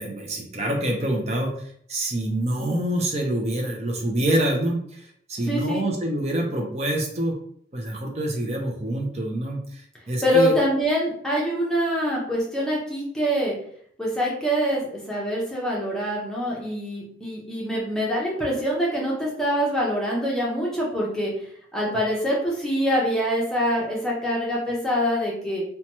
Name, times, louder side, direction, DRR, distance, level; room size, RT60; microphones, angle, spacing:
voice 1, 0.0-1.5 1.9-7.3 7.7-10.5, right 1 dB, 35° right, 1 dB, 0.6 m, -26 dB
voice 2, 5.5-5.8 10.2-13.5 14.0-21.3 21.7-25.6, equal, 5° left, -5 dB, 0.7 m, -25 dB
2.8 x 2.2 x 2.9 m, 0.64 s
head